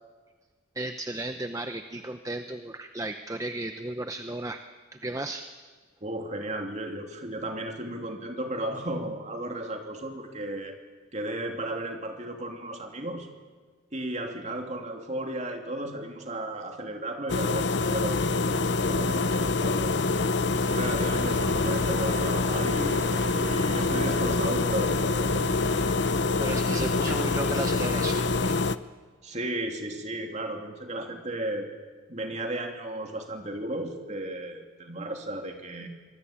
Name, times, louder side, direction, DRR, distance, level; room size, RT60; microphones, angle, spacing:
voice 1, 0.7-4.6 4.9-5.5 26.4-28.6, right 1 dB, 15° right, 7 dB, 0.8 m, -34 dB
voice 2, 6.0-10.8 11.1-13.3 13.9-20.0 20.7-25.6 29.2-31.7 32.1-35.9, right 1 dB, 35° right, 3 dB, 2.9 m, -34 dB
sound 1, 17.3-28.8, left 3 dB, 55° left, 0.7 m, -26 dB
sound 2, 20.7-25.9, right 2 dB, 65° right, 2.5 m, -39 dB
25.0 x 20.0 x 8.8 m, 1.5 s
head